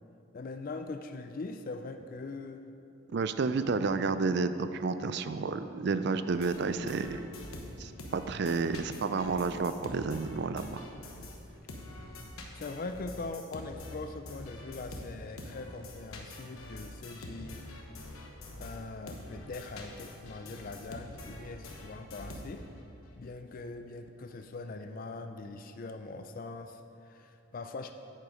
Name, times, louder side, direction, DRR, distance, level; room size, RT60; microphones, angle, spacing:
voice 1, 0.3-2.6 12.6-17.7 18.6-22.7 23.2-27.9, left 3 dB, 40° left, 8 dB, 0.3 m, -42 dB
voice 2, 3.1-7.3 7.8-10.9, right 4 dB, 50° right, 11 dB, 0.4 m, -31 dB
sound 1, 6.3-11.4 11.7-22.8, left 1 dB, 85° left, 1.1 m, -46 dB
9.2 x 7.7 x 4.9 m, 2.9 s
head